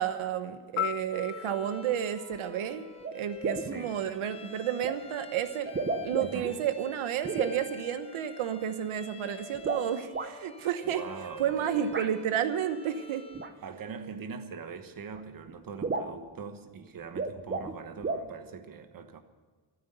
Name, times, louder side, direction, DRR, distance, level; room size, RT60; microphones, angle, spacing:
voice 1, 0.0-2.8 3.1-5.7 6.0-11.0 11.4-13.3, right 9 dB, 85° right, 10 dB, 1.1 m, -31 dB
Piano, 0.8-3.7 11.8-12.0, left 15 dB, 85° left, 0.6 m, -39 dB
Bowed string instrument, 1.1-13.6, left 3 dB, 10° left, 1.0 m, -49 dB
sound 1, 2.3-2.4 3.0-3.1 3.4-3.8 4.8-5.0 5.6-6.5 7.2-7.6 9.5-10.3 11.9-12.1 13.3-13.5 14.7-14.8 15.1-15.2 15.5-15.6 15.8-16.2 17.0-17.8 18.0-18.3, right 3 dB, 25° right, 0.9 m, -33 dB
voice 2, 3.6-4.0 6.2-6.6 10.8-11.9 13.6-19.2, right 6 dB, 45° right, 8 dB, 1.3 m, -42 dB
14.0 x 13.0 x 6.8 m, 1.5 s
wide cardioid pair, 160°, 48 cm